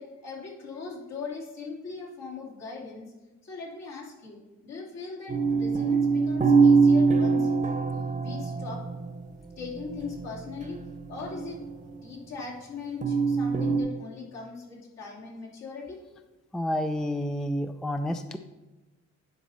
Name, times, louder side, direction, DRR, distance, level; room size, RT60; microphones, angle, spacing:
voice 1, 0.0-3.1 3.4-7.6 7.9-8.9 9.6-11.7 12.0-16.0, left 4 dB, 60° left, -5 dB, 2.8 m, -40 dB
sound 1, 5.3-9.4 9.6-11.9 13.0-13.8, right 4 dB, 25° right, 0.9 m, -24 dB
voice 2, 16.5-18.4, left 1 dB, ahead, 9 dB, 0.3 m, -29 dB
10.0 x 4.2 x 5.7 m, 1.1 s
cardioid pair, 120°, 29 cm